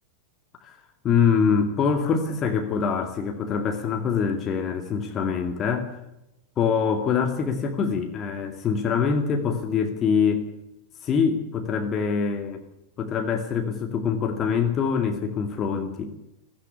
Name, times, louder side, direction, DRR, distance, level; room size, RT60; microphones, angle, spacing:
voice 1, 1.0-6.0 6.6-10.5 11.0-12.6 13.0-16.1, left 6 dB, 30° left, 5 dB, 2.3 m, -24 dB
16.5 x 16.0 x 9.6 m, 0.86 s
figure-of-eight pair, 90°, 0 cm